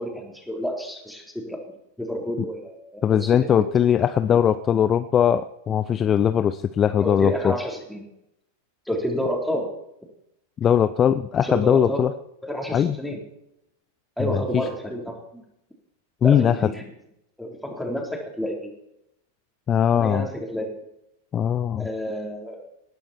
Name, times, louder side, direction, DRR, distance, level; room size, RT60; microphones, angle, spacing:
voice 1, 0.0-1.6 2.0-3.7 4.3-4.4 7.0-8.1 8.9-9.7 11.4-12.1 12.4-13.2 14.2-15.4 16.2-16.8 17.4-18.7 19.9-20.8 21.8-22.7, equal, ahead, 0 dB, 3.9 m, -30 dB
voice 2, 3.0-7.5 10.6-12.1 12.7-13.0 14.2-14.6 16.2-16.7 19.7-20.3 21.3-21.9, left 9 dB, 25° left, 12 dB, 0.6 m, -20 dB
19.5 x 11.5 x 4.5 m, 0.81 s
figure-of-eight pair, 90°, 0 cm